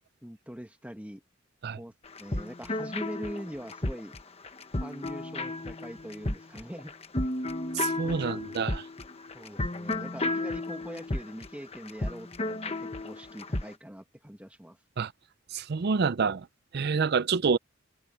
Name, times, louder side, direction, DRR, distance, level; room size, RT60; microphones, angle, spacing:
voice 1, 0.2-1.2 1.7-1.9 2.2-4.2 4.8-6.9 8.0-8.4 9.3-14.8, equal, 5° right, 1.4 m, -42 dB
sound 1, 2.1-13.7, left 2 dB, 30° left, 1.2 m, -33 dB
voice 2, 7.7-8.8 15.0-15.1 15.5-16.5 16.7-17.6, right 5 dB, 50° right, 0.5 m, -27 dB
head